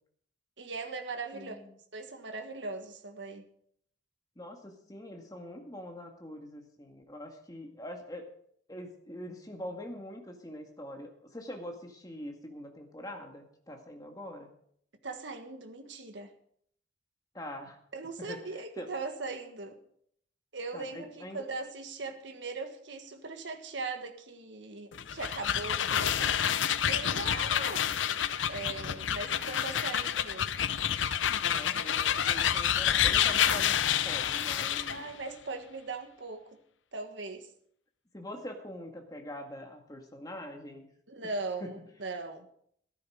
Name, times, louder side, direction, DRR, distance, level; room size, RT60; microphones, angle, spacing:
voice 1, 0.6-1.6 1.9-3.5 15.0-16.3 17.9-19.8 20.5-27.9 28.5-30.5 34.9-36.4 36.9-37.5 41.1-42.5, right 3 dB, 75° right, 6 dB, 1.6 m, -39 dB
voice 2, 1.3-1.7 4.4-8.3 8.7-14.5 17.3-17.8 18.2-18.9 20.7-21.5 31.5-35.1 38.1-40.9 41.6-41.8, left 1 dB, 20° left, 3 dB, 2.0 m, -44 dB
sound 1, 24.9-35.0, left 9 dB, 85° left, 0.6 m, -28 dB
14.0 x 12.5 x 4.9 m, 0.67 s
head